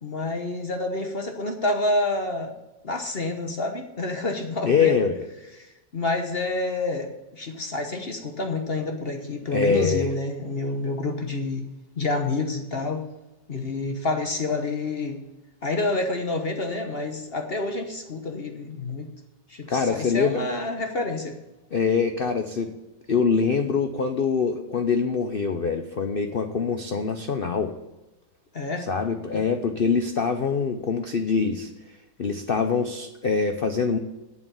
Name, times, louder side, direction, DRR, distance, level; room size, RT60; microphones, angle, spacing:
voice 1, 0.0-2.5 2.8-5.0 5.6-5.7 5.9-11.7 12.0-13.0 13.5-15.2 15.6-19.1 19.5-21.4 28.5-28.9, left 2 dB, 40° left, 4 dB, 1.1 m, -28 dB
voice 2, 4.6-5.2 9.5-10.1 19.7-20.4 21.7-22.7 23.1-27.7 28.9-31.7 32.2-34.0, left 5 dB, 80° left, 6 dB, 0.5 m, -24 dB
8.6 x 7.1 x 8.2 m, 1.0 s
omnidirectional pair, 2.0 m